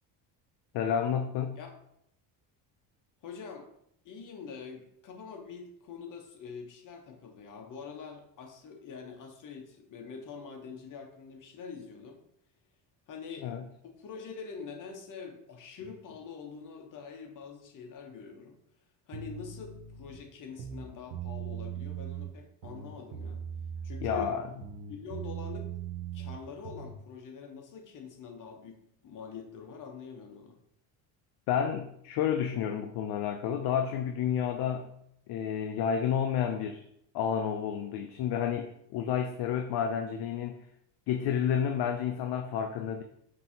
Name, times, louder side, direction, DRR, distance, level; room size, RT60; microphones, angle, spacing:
voice 1, 0.7-1.6 13.4-13.6 24.0-24.5 31.5-34.9 35.3-36.8 37.1-40.6 41.1-43.0, left 8 dB, 60° left, 5 dB, 0.5 m, -30 dB
voice 2, 3.2-3.7 4.0-12.2 13.1-13.5 13.8-18.6 19.1-23.4 23.8-24.3 24.9-25.9 26.1-30.6, left 6 dB, 45° left, 3 dB, 0.9 m, -45 dB
sound 1, 19.1-20.2 20.5-22.3 22.6-24.3 24.6-27.0, right 8 dB, 90° right, 0.7 m, -39 dB
5.4 x 2.8 x 2.7 m, 0.73 s
cardioid pair, 110°, 45 cm